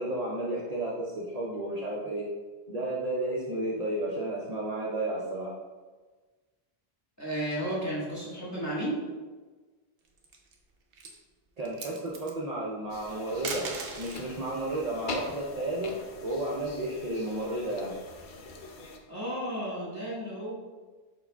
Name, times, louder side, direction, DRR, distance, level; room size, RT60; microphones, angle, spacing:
voice 1, 0.0-2.3 2.7-5.6 11.6-13.7 14.0-18.0, right 1 dB, 45° right, -5 dB, 0.6 m, -32 dB
voice 2, 7.2-9.0 19.1-20.5, right 1 dB, 15° left, -7 dB, 1.3 m, -33 dB
sound 1, 10.0-10.5 10.9-11.2 11.6-12.3 13.3-14.3 15.8-17.0, right 4 dB, 75° right, 0.8 m, -39 dB
sound 2, 12.9-19.0, left 3 dB, 60° left, 0.7 m, -43 dB
4.7 x 4.6 x 2.2 m, 1.3 s
omnidirectional pair, 1.0 m